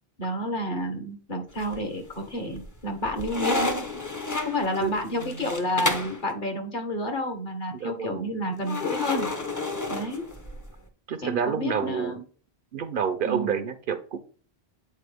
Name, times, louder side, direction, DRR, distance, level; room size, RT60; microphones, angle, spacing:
voice 1, 0.2-3.6 4.4-9.3 9.9-10.3 11.2-12.2 13.2-13.5, left 1 dB, 50° left, 5 dB, 1.3 m, -30 dB
sound 1, 1.5-2.1 2.5-6.2 8.7-10.7, left 2 dB, 20° left, 0.6 m, -30 dB
voice 2, 7.7-8.3 11.1-12.2 12.7-14.2, right 7 dB, 60° right, 11 dB, 0.7 m, -29 dB
8.2 x 4.3 x 3.3 m, 0.41 s
omnidirectional pair, 1.1 m